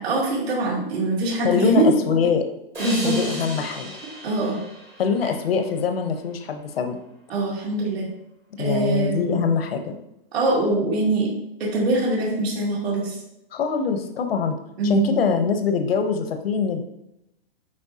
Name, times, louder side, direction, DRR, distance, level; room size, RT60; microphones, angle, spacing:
voice 1, 0.0-1.9 2.8-3.2 4.2-4.6 7.3-8.1 8.6-9.4 10.3-11.3 11.6-13.2 14.8-15.1, right 2 dB, 80° right, -4 dB, 2.5 m, -23 dB
voice 2, 1.4-2.4 3.0-3.9 5.0-7.0 8.6-9.9 13.5-14.6 14.8-16.8, left 6 dB, 70° left, 6 dB, 0.9 m, -23 dB
sound 1, 2.7-6.1, right 1 dB, 10° right, 0.6 m, -36 dB
8.6 x 4.4 x 2.8 m, 0.84 s
hypercardioid pair, 180°, 30 cm